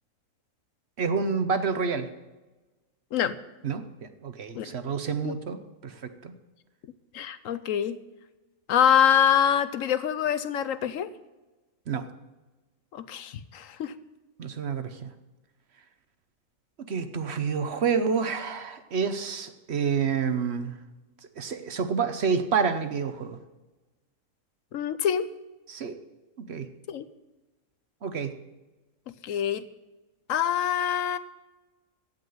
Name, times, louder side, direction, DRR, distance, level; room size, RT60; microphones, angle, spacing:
voice 1, 1.0-2.1 3.6-6.4 11.9-12.1 14.4-15.1 16.8-20.8 21.4-23.4 25.7-25.9 26.4-26.7 28.0-28.4, right 5 dB, 55° right, 9 dB, 1.1 m, -29 dB
voice 2, 7.1-8.0 8.7-11.1 12.9-13.9 24.7-25.3 26.9-27.1 29.2-29.7 30.3-31.2, left 9 dB, 75° left, 13 dB, 1.1 m, -25 dB
16.0 x 5.7 x 9.4 m, 1.1 s
omnidirectional pair, 1.4 m